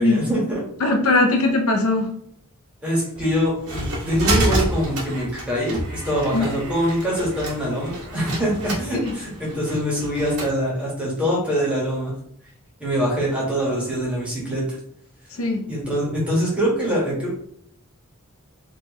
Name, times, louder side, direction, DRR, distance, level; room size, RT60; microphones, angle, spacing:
voice 1, 0.0-0.6 1.1-1.2 2.8-12.1 12.8-14.8 15.7-17.4, equal, 5° right, -6 dB, 1.5 m, -24 dB
voice 2, 0.8-2.1 6.3-6.5 8.9-9.2 15.3-15.7, left 2 dB, 70° left, 3 dB, 0.6 m, -20 dB
sound 1, 3.2-10.5, right 1 dB, 80° right, 1.6 m, -28 dB
3.7 x 2.9 x 3.0 m, 0.67 s
head